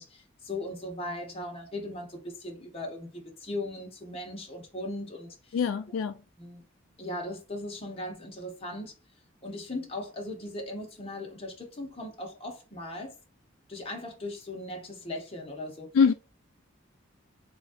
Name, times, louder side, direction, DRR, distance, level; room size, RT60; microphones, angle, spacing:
voice 1, 0.0-5.6 6.4-6.6 7.0-8.9 9.4-13.1 13.7-15.9, left 1 dB, 30° left, 1.1 m, -38 dB
voice 2, 5.5-6.2 15.9-16.1, left 6 dB, 75° left, 0.3 m, -23 dB
3.7 x 3.1 x 2.5 m
head